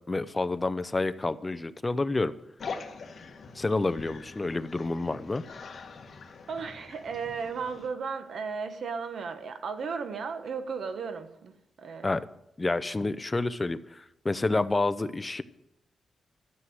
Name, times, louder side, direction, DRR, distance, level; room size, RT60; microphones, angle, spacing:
voice 1, 0.1-2.3 3.5-5.4 12.0-12.3 12.6-15.4, left 2 dB, 20° left, 0.6 m, -29 dB
sound 1, 2.6-7.9, left 5 dB, 55° left, 1.5 m, -43 dB
voice 2, 6.5-12.1, right 5 dB, 70° right, 1.3 m, -35 dB
13.0 x 7.6 x 7.9 m
wide cardioid pair, 115°, 0 cm